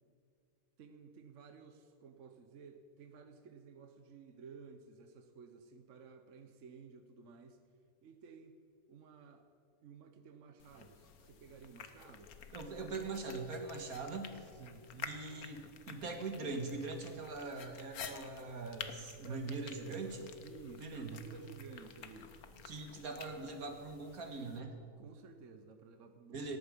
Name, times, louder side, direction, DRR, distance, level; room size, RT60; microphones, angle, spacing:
voice 1, 0.8-7.6 8.0-8.6 8.9-9.4 9.8-12.3 14.6-15.2 19.2-20.0 20.4-22.3 22.8-23.1 25.0-26.6, right 5 dB, 60° right, 6 dB, 1.2 m, -54 dB
sound 1, 10.6-24.6, left 7 dB, 90° left, 1.5 m, -51 dB
voice 2, 12.5-14.5 15.1-20.2 20.8-21.2 22.7-24.8 26.3-26.6, right 3 dB, 85° right, 4 dB, 2.2 m, -42 dB
18.0 x 13.5 x 5.2 m, 2.4 s
omnidirectional pair, 1.5 m